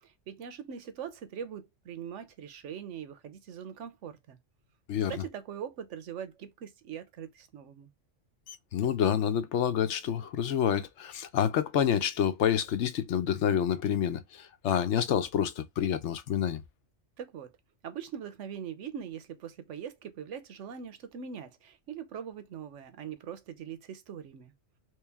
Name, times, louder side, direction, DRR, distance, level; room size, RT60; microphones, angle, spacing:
voice 1, 0.0-4.4 5.1-7.9 17.2-17.5 17.8-24.5, right 8 dB, 80° right, 1.0 m, -42 dB
voice 2, 8.5-14.2 14.6-16.6, left 9 dB, 70° left, 0.9 m, -28 dB
3.2 x 3.1 x 3.4 m
omnidirectional pair, 1.3 m